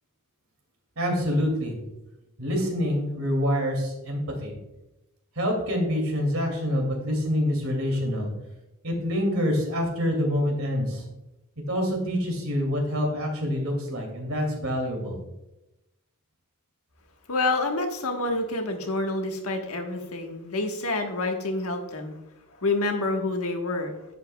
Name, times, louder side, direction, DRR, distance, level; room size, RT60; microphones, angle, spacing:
voice 1, 1.0-1.8 2.4-4.6 5.4-8.3 8.8-11.0 11.7-15.2, equal, 70° right, 2 dB, 2.5 m, -26 dB
voice 2, 17.3-22.2 22.6-24.1, left 2 dB, 85° left, 3 dB, 1.3 m, -28 dB
10.5 x 8.1 x 2.3 m, 0.93 s
head